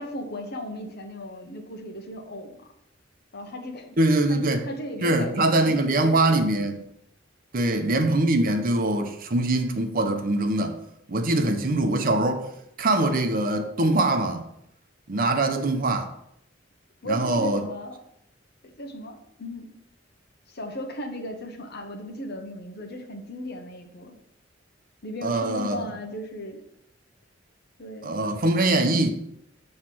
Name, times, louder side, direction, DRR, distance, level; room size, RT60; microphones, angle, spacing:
voice 1, 0.0-2.7 3.3-4.0 4.3-6.4 7.6-7.9 15.1-15.2 17.0-18.0 18.6-19.7 20.5-24.1 25.0-26.6 27.8-28.1, left 1 dB, 60° left, 1.0 m, -36 dB
voice 2, 4.0-4.6 5.0-6.8 7.5-10.8 11.1-12.5 12.8-14.5 15.1-16.1 17.0-17.7 25.2-25.8 28.0-29.1, right 2 dB, 50° right, 0.7 m, -23 dB
7.4 x 3.2 x 6.0 m
head